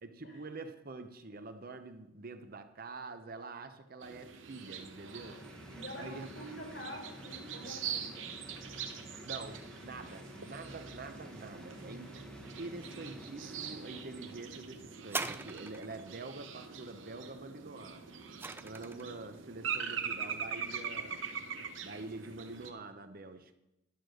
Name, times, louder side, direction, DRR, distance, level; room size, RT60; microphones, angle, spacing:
voice 1, 0.0-5.5 6.0-6.3 9.2-12.2 12.6-18.0 18.6-21.3 21.8-23.5, right 3 dB, 50° right, 0.9 m, -46 dB
sound 1, 4.0-22.7, right 7 dB, 80° right, 1.1 m, -43 dB
sound 2, 4.8-14.8, equal, 5° left, 1.0 m, -52 dB
voice 2, 5.7-8.3, equal, 75° left, 4.8 m, -46 dB
sound 3, 15.0-16.1 17.8-19.2 20.0-20.1, right 3 dB, 10° right, 0.4 m, -40 dB
11.0 x 6.8 x 6.4 m
head